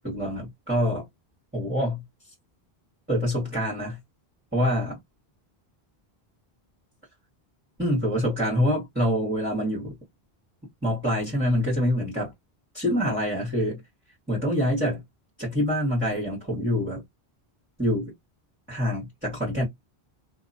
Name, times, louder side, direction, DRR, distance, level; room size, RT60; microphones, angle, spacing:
voice 1, 0.0-1.1 1.5-2.0 3.1-4.0 4.5-5.0 7.8-9.9 10.8-12.3 12.7-13.8 14.3-15.0 15.4-17.0 17.8-18.1 18.7-19.6, equal, 10° right, 1.5 m, -25 dB
2.8 x 2.6 x 2.5 m
omnidirectional pair, 1.0 m